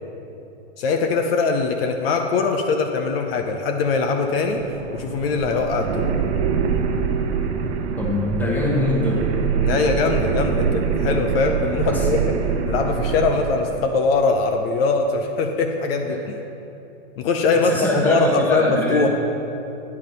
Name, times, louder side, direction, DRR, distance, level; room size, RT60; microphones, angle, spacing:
voice 1, 0.8-4.6 4.9-6.1 9.6-12.4 12.7-16.3 17.2-19.1, left 4 dB, 50° left, 4 dB, 0.8 m, -21 dB
sound 1, 4.4-14.0, right 6 dB, 60° right, 0.8 m, -24 dB
voice 2, 8.0-9.2 10.5-10.6 11.9-12.0 16.1-16.2 17.5-19.1, left 1 dB, 5° left, -3 dB, 1.2 m, -23 dB
9.7 x 5.7 x 5.4 m, 2.9 s
hypercardioid pair, 140°, 37 cm